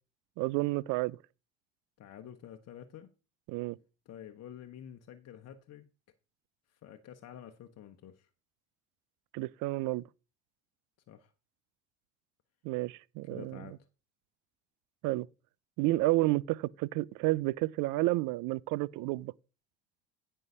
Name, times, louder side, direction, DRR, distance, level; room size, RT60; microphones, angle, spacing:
voice 1, 0.4-1.2 3.5-3.8 9.3-10.0 12.6-13.6 15.0-15.3 15.8-19.3, right 19 dB, 70° right, 0.5 m, -30 dB
voice 2, 2.0-3.1 4.0-5.9 6.7-8.3 11.1-11.3 13.3-13.9, left 10 dB, 50° left, 1.0 m, -49 dB
9.3 x 5.6 x 5.5 m
supercardioid pair, 80°, 33 cm